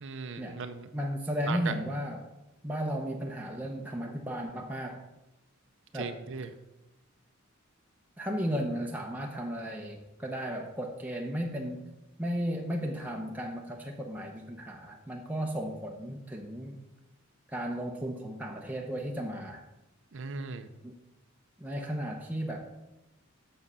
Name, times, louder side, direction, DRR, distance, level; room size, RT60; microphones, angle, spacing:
voice 1, 0.0-0.9 1.4-1.7 5.9-6.5 20.1-20.7, right 5 dB, 65° right, 9 dB, 0.6 m, -37 dB
voice 2, 0.9-2.2 2.6-5.0 5.9-6.1 8.2-11.8 12.2-16.8 17.5-19.6 20.8-20.9 21.6-22.7, equal, 10° right, 0 dB, 0.7 m, -34 dB
7.3 x 6.5 x 5.6 m, 0.97 s
head